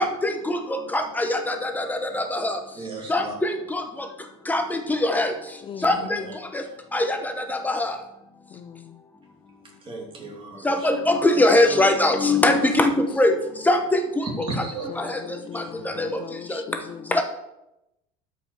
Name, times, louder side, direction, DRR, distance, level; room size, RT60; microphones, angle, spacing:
voice 1, 0.0-2.6 3.1-3.8 4.5-5.3 5.8-6.2 6.9-8.0 10.6-13.4 13.6-14.6 15.0-15.2 15.5-16.1 16.5-16.6 17.1-17.2, left 1 dB, 10° left, 6 dB, 1.0 m, -22 dB
voice 2, 2.7-3.3 5.8-6.4 9.8-10.9 14.2-16.2, right 3 dB, 30° right, -1 dB, 2.9 m, -36 dB
voice 3, 5.6-6.4 8.5-9.0 12.3-12.6 14.4-17.2, left 8 dB, 30° left, 16 dB, 0.4 m, -39 dB
12.5 x 5.7 x 4.9 m, 0.89 s
cardioid pair, 130°, 17 cm